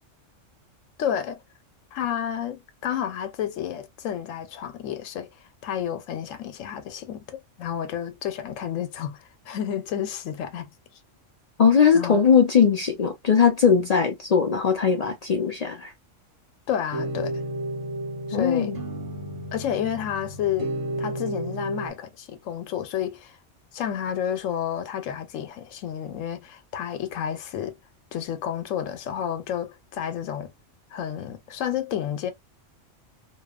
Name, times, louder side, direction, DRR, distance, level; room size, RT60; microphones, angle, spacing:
voice 1, 1.0-1.4 1.9-5.3 5.6-10.7 11.9-12.3 16.7-17.3 18.3-18.8 19.5-20.7 21.0-23.4 23.7-27.8 28.1-30.5 30.9-32.3, left 9 dB, 90° left, 1.0 m, -30 dB
voice 2, 11.6-15.9 18.3-18.8, left 6 dB, 75° left, 0.3 m, -20 dB
sound 1, 16.9-21.9, right 1 dB, 70° right, 1.3 m, -32 dB
2.7 x 2.3 x 2.3 m
omnidirectional pair, 1.3 m